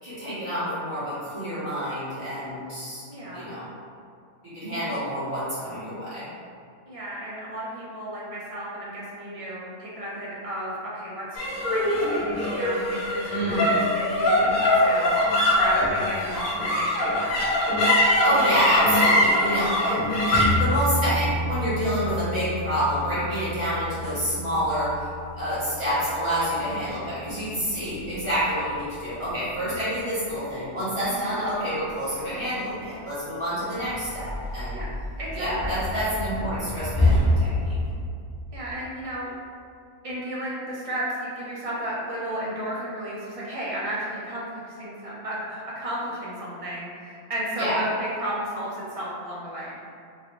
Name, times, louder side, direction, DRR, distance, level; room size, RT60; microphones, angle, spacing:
voice 1, 0.0-3.1 3.3-3.6 4.4-6.2 13.3-13.8 18.2-19.9 20.3-25.1 25.4-34.8 35.3-37.5 47.5-47.7, equal, 25° right, -14 dB, 1.4 m, -28 dB
voice 2, 3.1-3.5 6.9-11.3 11.7-15.1 15.4-17.5 31.1-31.4 34.7-34.9 35.2-35.8 38.5-39.3 40.0-49.8, right 1 dB, 45° right, -7 dB, 0.4 m, -33 dB
sound 1, 11.4-27.9, left 1 dB, 55° left, 0.8 m, -24 dB
sound 2, 18.7-37.9, left 1 dB, 30° left, 0.4 m, -31 dB
3.0 x 2.6 x 2.9 m, 2.3 s
omnidirectional pair, 1.3 m